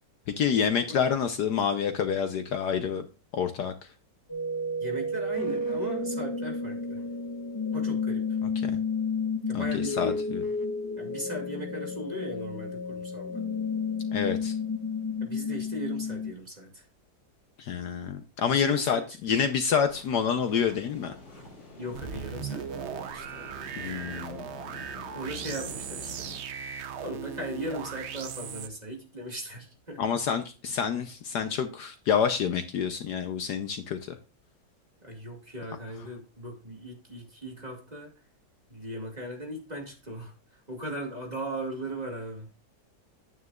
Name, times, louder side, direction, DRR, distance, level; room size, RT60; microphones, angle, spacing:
voice 1, 0.4-3.1 3.3-3.9 8.6-8.8 9.5-10.4 14.1-14.6 17.6-21.1 23.8-24.4 30.0-34.2, left 7 dB, 65° left, 8 dB, 1.2 m, -28 dB
sound 1, 4.3-16.3, left 3 dB, 30° left, 0.4 m, -31 dB
voice 2, 4.8-7.0 7.7-8.3 9.5-10.2 11.0-13.4 15.2-16.8 18.5-19.4 21.8-23.8 25.1-26.3 27.0-30.0 35.0-38.1 38.7-42.5, right 1 dB, 20° right, 0 dB, 2.2 m, -38 dB
sound 2, 19.9-26.4, left 2 dB, 85° left, 4.0 m, -47 dB
sound 3, 21.9-28.7, right 7 dB, 80° right, 0.6 m, -38 dB
9.3 x 9.3 x 2.4 m, 0.32 s
omnidirectional pair, 2.0 m